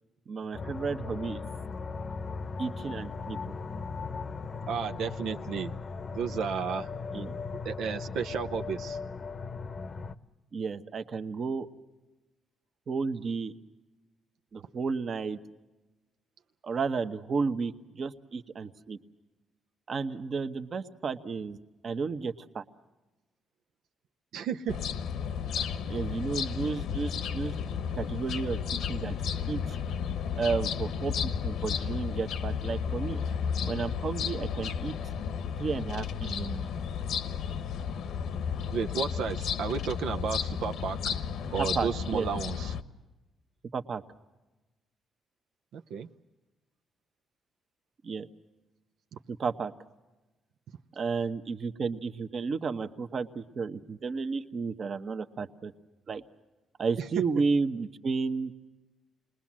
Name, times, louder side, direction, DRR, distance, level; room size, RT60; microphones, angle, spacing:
voice 1, 0.3-1.4 2.6-3.4 7.1-7.3 10.5-11.7 12.9-13.5 14.5-15.4 16.6-19.0 19.9-21.6 21.8-22.6 25.6-25.7 25.9-27.5 28.0-28.6 28.9-29.1 29.5-29.8 30.4-33.2 33.6-34.9 35.6-36.7 41.6-42.3 43.7-44.0 48.0-48.3 49.3-49.7 50.9-55.7 56.1-56.2 56.8-58.5, right 5 dB, 40° right, 9 dB, 1.0 m, -32 dB
sound 1, 0.5-10.2, left 4 dB, 35° left, 0.8 m, -38 dB
voice 2, 4.7-5.7 6.1-6.9 7.6-9.0 24.3-24.8 38.7-41.1 41.5-42.7 45.7-46.1 57.0-57.1, right 6 dB, 80° right, 5 dB, 0.8 m, -33 dB
sound 2, 24.7-42.8, left 7 dB, 75° left, 1.1 m, -33 dB
28.5 x 20.5 x 7.4 m, 1.1 s
cardioid pair, 135°, 0 cm